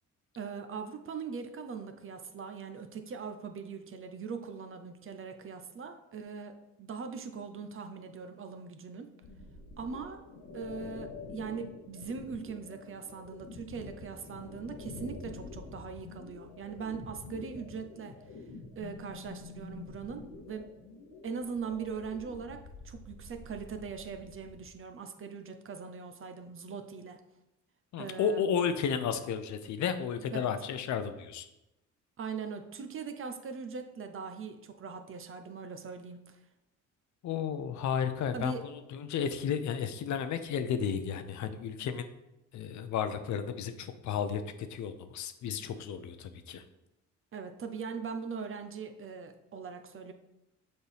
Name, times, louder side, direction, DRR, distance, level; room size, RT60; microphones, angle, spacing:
voice 1, 0.4-9.1 9.8-10.2 10.5-18.2 18.8-20.7 21.2-27.2 28.0-28.4 30.3-30.5 32.2-36.4 38.3-38.6 47.3-50.1, right 5 dB, 45° right, 7 dB, 0.7 m, -41 dB
sound 1, 9.2-24.7, left 3 dB, 90° left, 1.0 m, -47 dB
voice 2, 27.9-31.5 37.2-42.1 42.5-46.6, left 7 dB, 70° left, 10 dB, 0.6 m, -33 dB
6.8 x 4.4 x 3.4 m, 0.92 s
cardioid pair, 90°, 30 cm